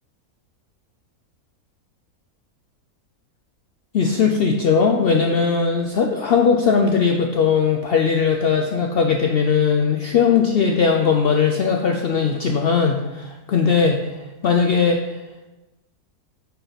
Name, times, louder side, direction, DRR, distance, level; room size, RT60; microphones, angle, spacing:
voice 1, 3.9-14.1 14.4-15.2, left 5 dB, 85° left, 2 dB, 0.5 m, -19 dB
5.1 x 4.6 x 5.7 m, 1.1 s
omnidirectional pair, 1.6 m